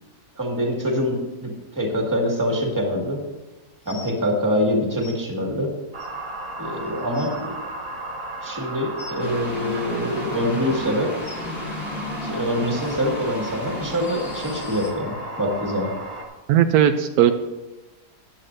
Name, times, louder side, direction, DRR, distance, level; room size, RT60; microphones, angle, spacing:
voice 1, 0.3-3.2 3.8-5.7 6.6-7.5 8.4-11.1 12.2-15.9, equal, 15° right, 0 dB, 1.8 m, -25 dB
sound 1, 3.8-4.1 5.0-5.1 6.0-6.1 6.7-6.8 7.0-7.3 9.0-9.2 10.2-10.4 11.2-11.4 12.5-12.6 13.4-13.5 14.2-14.3, left 4 dB, 50° left, 1.7 m, -41 dB
sound 2, 5.9-16.2, right 2 dB, 40° right, 1.9 m, -34 dB
sound 3, 9.2-14.9, left 2 dB, 75° left, 2.1 m, -34 dB
voice 2, 16.5-17.3, right 10 dB, 80° right, 8 dB, 1.1 m, -17 dB
14.5 x 10.0 x 2.6 m, 1.1 s
omnidirectional pair, 1.6 m